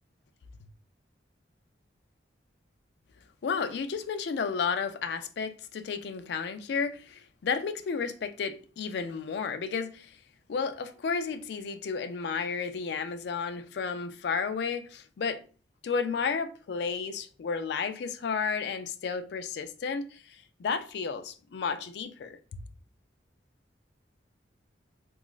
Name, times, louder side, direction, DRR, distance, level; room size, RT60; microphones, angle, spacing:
voice 1, 3.4-10.2 10.5-15.4 15.8-22.6, left 5 dB, 60° left, 0.3 m, -32 dB
2.9 x 2.3 x 2.3 m
head